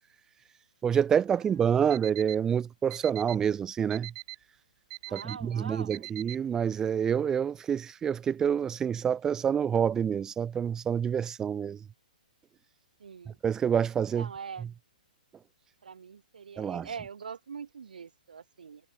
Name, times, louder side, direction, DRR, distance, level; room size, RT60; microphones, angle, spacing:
voice 1, 0.8-4.1 5.1-11.8 13.4-14.3 14.6-14.7 16.6-16.9, right 8 dB, 15° right, 1.3 m, -27 dB
Alarm, 1.9-2.3 2.9-3.3 3.9-4.3 4.9-5.3 5.9-6.3, right 23 dB, 35° right, 3.4 m, -41 dB
voice 2, 5.1-6.0 13.0-13.4 14.1-14.6 15.8-18.8, right 6 dB, 80° right, 6.4 m, -43 dB
hypercardioid pair, 150°, 4 cm